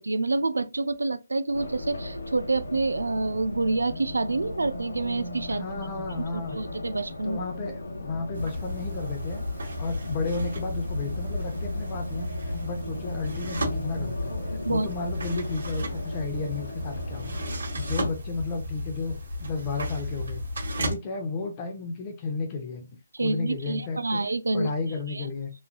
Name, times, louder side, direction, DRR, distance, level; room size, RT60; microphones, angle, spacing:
voice 1, 0.0-5.6 6.1-6.2 6.5-7.4 14.6-14.9 23.1-24.7 25.1-25.3, right 3 dB, 90° right, 0.3 m, -27 dB
Race car auto racing, 1.5-18.1, left 1 dB, 75° left, 0.8 m, -37 dB
voice 2, 5.5-6.6 7.2-17.4 17.7-20.4 20.8-22.9 23.2-24.2 24.5-25.5, left 4 dB, 25° left, 0.5 m, -33 dB
sound 1, 8.3-20.9, left 1 dB, 70° right, 1.4 m, -33 dB
3.1 x 2.3 x 2.2 m
hypercardioid pair, 155°, 0 cm